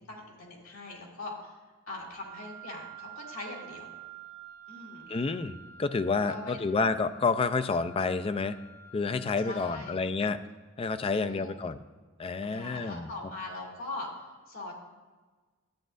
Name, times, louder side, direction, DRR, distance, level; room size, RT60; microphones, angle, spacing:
voice 1, 0.1-1.6 1.9-3.9 4.7-5.1 6.3-6.6 9.4-10.0 11.0-11.5 12.4-14.1 14.5-14.7, left 2 dB, 80° left, -2 dB, 2.6 m, -41 dB
Wind instrument woodwind instrument, 2.1-9.9, right 6 dB, 20° right, 0.9 m, -49 dB
voice 2, 5.1-8.6 8.9-10.4 10.8-11.8 12.2-13.1, left 4 dB, 25° left, 11 dB, 0.3 m, -29 dB
13.0 x 9.0 x 2.5 m, 1.3 s
head